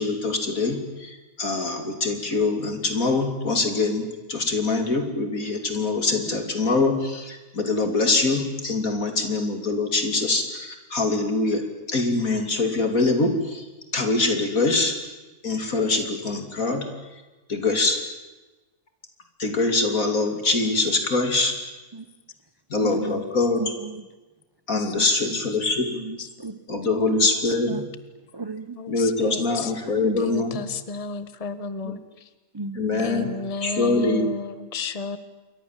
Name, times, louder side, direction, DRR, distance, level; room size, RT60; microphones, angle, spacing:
voice 1, 0.0-11.6 11.9-13.6 13.9-15.0 15.4-16.8 17.5-18.0 19.4-21.5 22.7-23.6 24.7-25.9 26.7-27.8 28.9-30.6 31.8-31.9 32.7-33.3 33.6-34.3, left 3 dB, 65° left, 5 dB, 3.4 m, -24 dB
voice 2, 22.8-23.2 23.6-24.0 24.7-25.4 25.9-26.6 27.1-27.9 28.3-28.8 29.2-29.3 30.0-30.7 32.5-33.2, right 3 dB, 25° right, 12 dB, 0.6 m, -35 dB
voice 3, 28.7-29.7 30.2-32.3 33.0-35.2, left 3 dB, 25° left, 12 dB, 1.3 m, -32 dB
28.0 x 24.0 x 7.5 m, 1.1 s
omnidirectional pair, 1.6 m